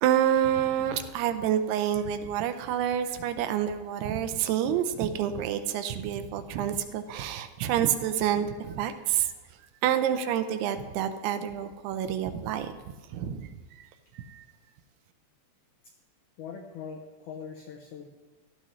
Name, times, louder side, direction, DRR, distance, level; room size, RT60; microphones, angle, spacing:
voice 1, 0.0-9.3 9.8-13.5 13.8-13.9 14.1-14.4, right 10 dB, 85° right, 9 dB, 2.7 m, -28 dB
voice 2, 16.4-18.1, left 6 dB, 90° left, 3 dB, 1.7 m, -41 dB
16.0 x 12.5 x 3.2 m, 1.3 s
omnidirectional pair, 4.6 m